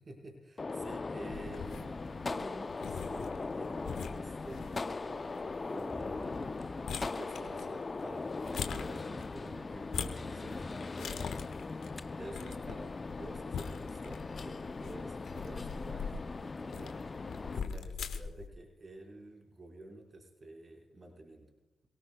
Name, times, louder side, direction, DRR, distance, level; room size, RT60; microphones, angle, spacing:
voice 1, 0.0-6.4 7.0-11.4 11.8-17.0 17.6-21.5, right 1 dB, 45° right, 1 dB, 4.5 m, -50 dB
Gunshot gunfire, 0.6-17.6, left 3 dB, 40° left, 0.5 m, -40 dB
sound 1, 1.3-18.5, left 6 dB, 75° left, 1.2 m, -44 dB
sound 2, 5.9-11.6 11.9-13.0 14.1-14.2 14.7-15.2 15.5-16.3 16.7-19.1, right 1 dB, 15° right, 3.6 m, -56 dB
27.5 x 18.0 x 2.2 m, 0.93 s
supercardioid pair, 40°, 0 cm